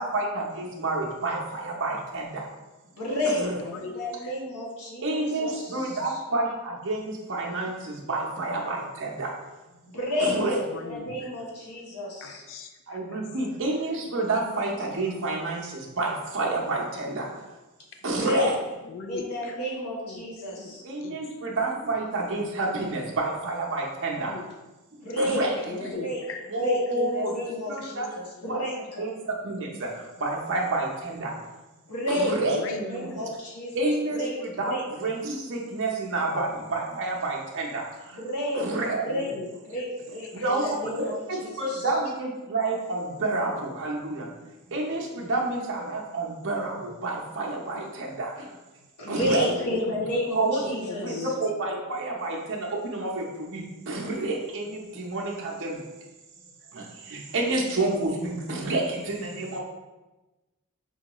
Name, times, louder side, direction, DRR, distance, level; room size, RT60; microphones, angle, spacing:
voice 1, 0.0-2.5 3.2-3.6 5.0-9.3 10.2-10.6 12.9-17.3 18.0-18.5 20.8-24.3 25.2-26.0 26.5-27.3 27.7-28.1 28.5-28.6 29.0-31.4 32.1-33.1 33.7-38.2 38.5-39.0 40.3-44.3 44.7-48.5 49.1-49.5 50.3-50.6 51.0-55.8 56.7-59.6, right 2 dB, 60° right, -2 dB, 0.7 m, -29 dB
voice 2, 2.9-5.9 10.0-10.3 10.6-12.4 18.1-18.5 19.1-20.8 25.0-25.4 25.9-26.2 26.5-29.0 31.9-34.8 38.1-38.6 39.0-39.3 39.7-41.8 49.0-51.3, left 1 dB, 90° left, -3 dB, 1.0 m, -31 dB
voice 3, 3.6-4.3 10.6-11.3 12.2-13.2 18.8-19.6 20.1-20.3 20.6-21.7 24.3-24.5 25.6-26.4 27.5-27.9 28.4-28.5 32.4-32.9 39.1-39.8 40.3-40.7 43.7-43.8 44.1-44.2 45.2-45.3 47.7-47.9 49.4-50.0 50.7-51.7 54.7-54.8 55.7-55.8 58.5-59.1 59.4-59.5, left 5 dB, 60° left, 6 dB, 0.4 m, -40 dB
5.6 x 2.3 x 2.9 m, 1.1 s
head